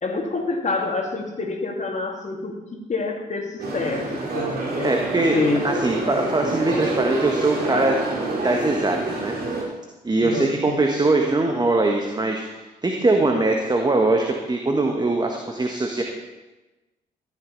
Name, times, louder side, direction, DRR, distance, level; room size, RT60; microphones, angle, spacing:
voice 1, 0.0-4.9 5.3-5.8 10.2-10.9, left 3 dB, 35° left, 2 dB, 2.5 m, -27 dB
sound 1, 3.6-9.6, right 2 dB, 45° right, 3.4 m, -27 dB
voice 2, 4.8-5.4 5.6-8.0 8.4-9.6 10.0-16.0, right 2 dB, 20° right, 2 dB, 1.5 m, -22 dB
14.5 x 11.0 x 4.2 m, 1.1 s
figure-of-eight pair, 40°, 21 cm